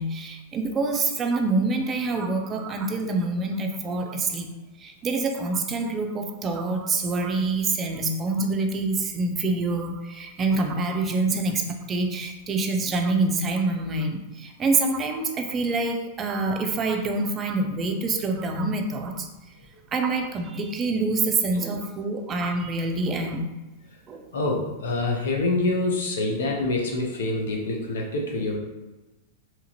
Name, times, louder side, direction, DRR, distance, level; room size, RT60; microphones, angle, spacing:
voice 1, 0.0-4.5 4.8-11.6 11.9-19.3 19.9-23.5 24.1-24.2, right 3 dB, 25° right, 4 dB, 0.4 m, -26 dB
voice 2, 24.3-28.6, left 2 dB, 80° left, 0 dB, 0.7 m, -26 dB
2.9 x 2.4 x 2.8 m, 1.1 s
hypercardioid pair, 115°, 0 cm